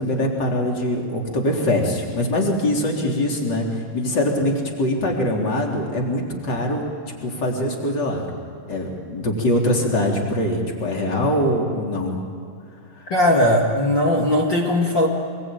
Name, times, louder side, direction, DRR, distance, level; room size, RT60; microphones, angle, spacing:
voice 1, 0.0-8.3 8.7-12.2 13.0-13.1, left 1 dB, 25° left, 0 dB, 3.6 m, -23 dB
voice 2, 13.1-15.1, left 1 dB, 60° left, 0 dB, 1.1 m, -18 dB
25.5 x 22.0 x 9.2 m, 2.5 s
omnidirectional pair, 5.5 m